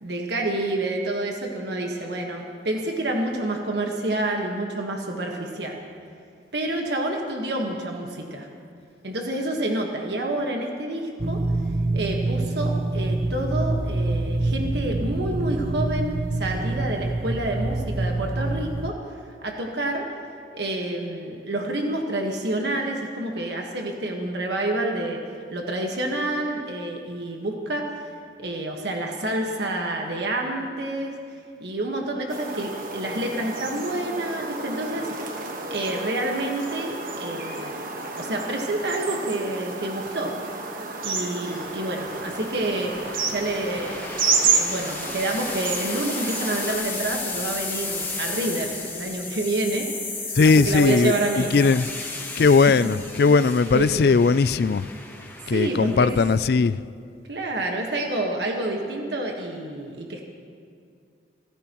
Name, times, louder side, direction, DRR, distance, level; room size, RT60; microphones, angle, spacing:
voice 1, 0.0-5.8 6.5-8.5 9.0-11.4 11.9-19.0 19.4-20.1 20.5-25.2 25.5-27.8 28.4-31.1 31.6-35.3 35.7-37.7 38.2-40.3 41.0-42.9 43.3-44.1 44.4-49.9 50.1-51.7 52.4-52.7 53.2-53.3 53.7-54.1 55.5-56.1 57.3-60.3, right 1 dB, 70° right, 1 dB, 1.5 m, -28 dB
sound 1, 11.2-18.9, right 2 dB, 30° right, 0.4 m, -26 dB
sound 2, 32.3-46.7, right 4 dB, 50° right, 1.4 m, -30 dB
sound 3, 41.5-56.2, left 3 dB, 10° left, 1.2 m, -34 dB
voice 2, 50.4-51.9 52.4-54.9 55.5-56.8, left 4 dB, 60° left, 16 dB, 0.3 m, -19 dB
29.5 x 15.0 x 3.1 m, 2.3 s
head